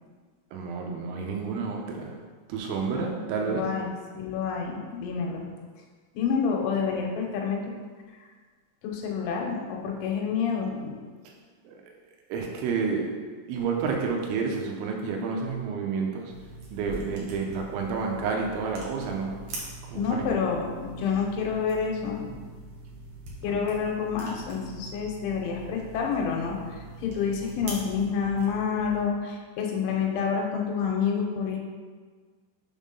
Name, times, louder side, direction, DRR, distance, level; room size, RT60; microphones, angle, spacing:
voice 1, 0.5-2.1 2.5-3.7 11.2-11.3 11.7-11.8 12.3-13.1 13.5-16.3 16.7-19.3 19.9-20.4 23.5-23.9, right 5 dB, 85° right, 1 dB, 3.1 m, -30 dB
voice 2, 3.5-5.5 6.1-7.6 8.2-8.3 8.8-11.0 19.9-22.5 23.4-31.6, left 6 dB, 90° left, 0 dB, 3.3 m, -28 dB
sound 1, 16.3-29.0, right 2 dB, 70° right, 1.8 m, -43 dB
7.1 x 3.7 x 5.3 m, 1.5 s
omnidirectional pair, 5.5 m